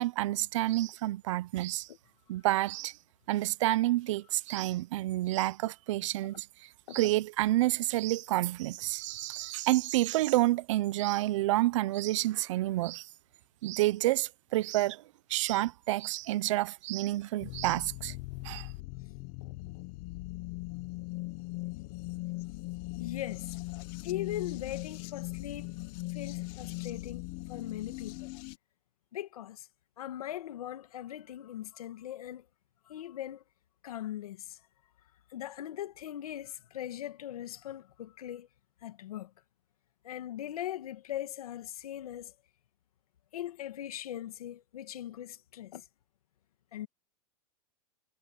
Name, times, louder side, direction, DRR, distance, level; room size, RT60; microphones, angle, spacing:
voice 1, 0.0-1.9 2.3-3.0 3.3-13.1 13.6-15.0 15.3-18.1 18.4-18.7, right 17 dB, 60° right, 0.6 m, -29 dB
sound 1, 17.4-28.6, left 22 dB, 40° left, 1.0 m, -40 dB
voice 2, 19.4-19.8 22.9-25.8 26.1-28.3 29.1-29.7 30.0-32.5 32.9-33.4 33.8-34.6 35.3-38.5 38.8-39.3 40.0-42.3 43.3-45.9 46.7-46.9, left 12 dB, 90° left, 1.8 m, -40 dB
supercardioid pair, 160°, 18 cm